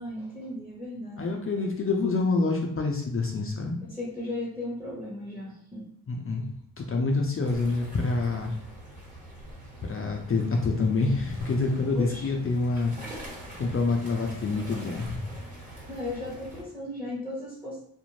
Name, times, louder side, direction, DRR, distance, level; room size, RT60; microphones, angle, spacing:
voice 1, 0.0-1.7 3.8-5.8 11.9-12.3 15.9-17.8, left 1 dB, 5° right, -6 dB, 1.0 m, -36 dB
voice 2, 1.2-3.8 6.1-6.4 6.8-8.6 9.8-12.9 13.5-15.3, left 3 dB, 35° left, 1 dB, 0.5 m, -27 dB
sound 1, 7.4-16.6, right 1 dB, 20° right, 1.3 m, -44 dB
2.5 x 2.1 x 3.1 m, 0.66 s
cardioid pair, 65°, 38 cm